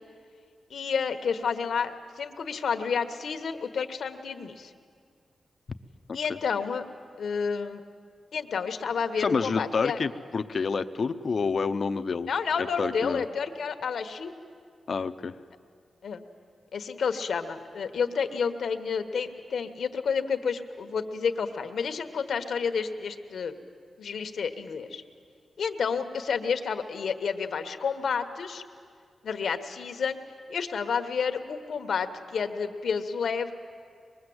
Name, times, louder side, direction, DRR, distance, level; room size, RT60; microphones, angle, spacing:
voice 1, 0.7-4.7 6.1-6.8 7.2-7.8 8.3-10.0 12.3-14.3 16.0-16.2 16.7-23.5 24.0-25.0 25.6-28.6 29.2-30.2 30.5-33.5, left 6 dB, 75° left, 7 dB, 1.3 m, -30 dB
voice 2, 9.2-12.3 12.6-13.2 14.9-15.3, left 5 dB, 50° left, 10 dB, 0.7 m, -28 dB
24.0 x 21.0 x 7.9 m, 2.1 s
wide cardioid pair, 130°, 0 cm